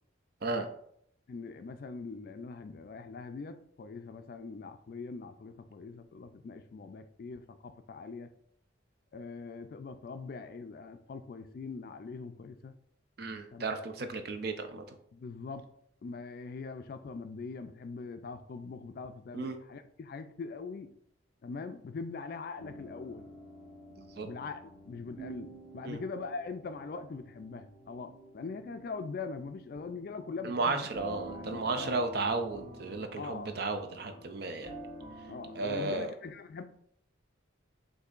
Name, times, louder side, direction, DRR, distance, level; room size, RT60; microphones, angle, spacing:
voice 1, 1.3-8.3 9.1-12.7 13.5-13.8 15.1-15.7 16.0-20.9 21.4-23.3 24.2-30.9 31.3-32.1 33.2-33.5 35.3-36.6, left 4 dB, 50° left, 10 dB, 0.3 m, -42 dB
voice 2, 13.2-15.0 19.3-19.6 24.0-24.3 25.8-26.0 30.4-34.7 35.6-36.1, right 3 dB, 55° right, 7 dB, 0.5 m, -34 dB
sound 1, 22.6-36.0, right 2 dB, 30° right, 0.9 m, -49 dB
6.5 x 2.6 x 2.4 m, 0.68 s
head